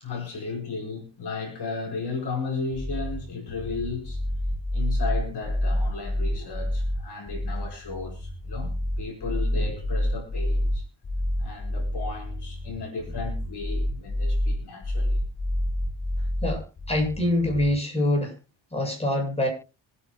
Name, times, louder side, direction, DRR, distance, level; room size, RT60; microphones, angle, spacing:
voice 1, 0.0-4.2 4.7-10.8 11.4-15.2, left 4 dB, 55° left, 5.3 m, -34 dB
sound 1, 2.7-17.7, left 1 dB, 35° left, 3.1 m, -28 dB
voice 2, 16.9-18.3 18.7-19.5, left 1 dB, 15° left, 7.7 m, -24 dB
26.0 x 9.6 x 2.4 m
wide cardioid pair, 140°, 46 cm